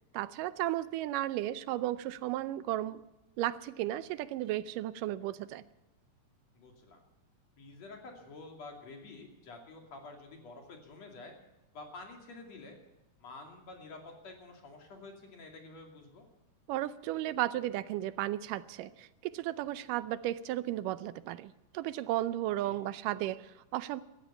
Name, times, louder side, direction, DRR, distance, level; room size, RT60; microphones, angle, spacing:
voice 1, 0.1-3.0 3.4-5.6 16.7-24.0, right 14 dB, 90° right, 15 dB, 2.3 m, -34 dB
voice 2, 6.6-7.0 7.6-11.3 11.7-12.8 13.2-16.3 22.6-22.8, left 3 dB, 55° left, 2 dB, 3.7 m, -49 dB
17.5 x 13.5 x 5.7 m, 0.98 s
omnidirectional pair, 3.7 m